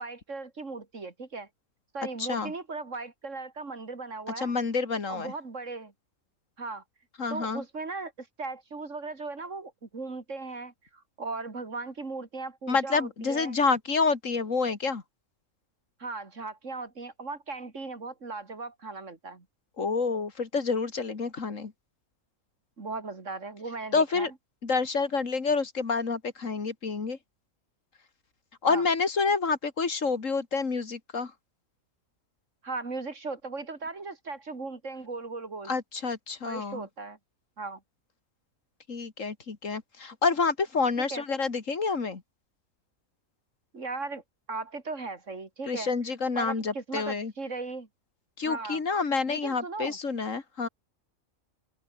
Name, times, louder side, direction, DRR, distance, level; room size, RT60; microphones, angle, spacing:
voice 1, 0.0-1.5 1.9-4.5 5.1-5.9 6.6-6.8 7.3-13.6 16.0-19.4 22.8-24.3 28.7-28.8 32.6-35.7 36.4-37.2 37.6-37.8 41.0-41.2 43.7-44.2 44.5-45.9 46.3-47.9 48.5-48.8 49.3-50.0, right 3 dB, 60° right, 3.1 m, -37 dB
voice 2, 2.2-2.5 4.4-5.3 7.2-7.6 12.7-15.0 19.8-21.7 23.9-24.3 24.6-27.2 28.6-31.3 35.7-36.9 38.9-42.2 45.7-47.3 48.4-50.7, left 4 dB, 65° left, 2.5 m, -28 dB
open air
omnidirectional pair, 1.5 m